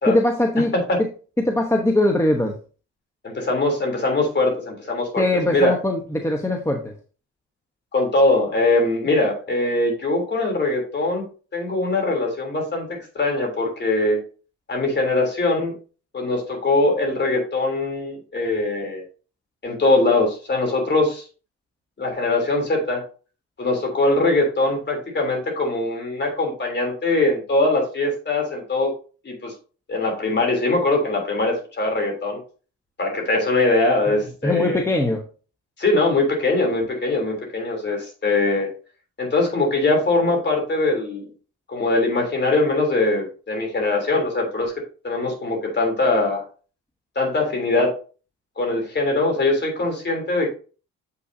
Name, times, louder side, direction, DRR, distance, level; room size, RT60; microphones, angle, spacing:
voice 1, 0.1-0.7 1.4-2.6 5.2-6.9 34.4-35.2, left 1 dB, 10° left, 2 dB, 0.9 m, -21 dB
voice 2, 3.2-5.7 7.9-11.2 11.5-14.2 14.7-15.7 16.1-19.0 19.6-21.2 22.0-23.0 23.6-28.9 29.2-29.5 29.9-32.4 33.0-34.8 35.8-38.7 39.2-41.3 41.7-44.7 45.0-46.4 47.1-47.9 48.6-50.5, left 2 dB, 35° left, 2 dB, 3.2 m, -22 dB
7.8 x 5.8 x 2.7 m, 0.37 s
cardioid pair, 90°, 30 cm